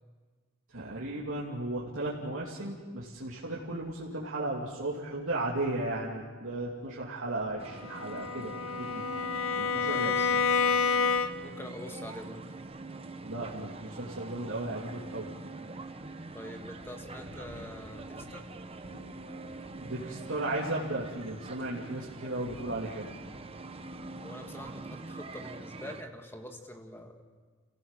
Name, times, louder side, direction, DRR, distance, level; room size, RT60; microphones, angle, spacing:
voice 1, 0.7-9.0 9.5-10.4 13.2-15.3 19.8-23.1, right 2 dB, 80° right, -6 dB, 2.7 m, -35 dB
sound 1, 7.6-26.0, right 2 dB, 30° right, 0.9 m, -44 dB
Bowed string instrument, 7.8-11.6, left 5 dB, 80° left, 1.1 m, -29 dB
voice 2, 9.9-10.3 11.4-12.4 16.3-18.5 24.2-27.2, left 1 dB, 10° left, 4 dB, 1.7 m, -45 dB
sound 2, 14.4-14.5 15.1-15.2 15.8-15.9 16.6-19.9 20.2-20.7 21.4-24.9 25.2-25.5, equal, 55° left, 3.6 m, -53 dB
28.5 x 16.5 x 7.4 m, 1.5 s
head